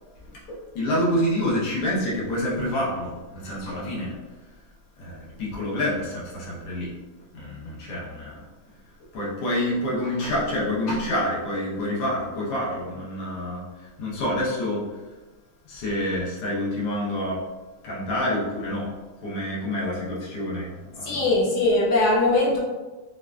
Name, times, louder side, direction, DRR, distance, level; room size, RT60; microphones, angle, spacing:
voice 1, 0.5-4.2 5.0-6.9 7.3-8.4 9.1-13.6 14.0-14.9 15.7-17.4 17.8-18.9 19.2-21.3, left 1 dB, 85° left, -5 dB, 2.0 m, -27 dB
voice 2, 21.0-22.6, left 2 dB, 70° left, -2 dB, 0.9 m, -20 dB
6.8 x 2.5 x 2.4 m, 1.2 s
omnidirectional pair, 2.3 m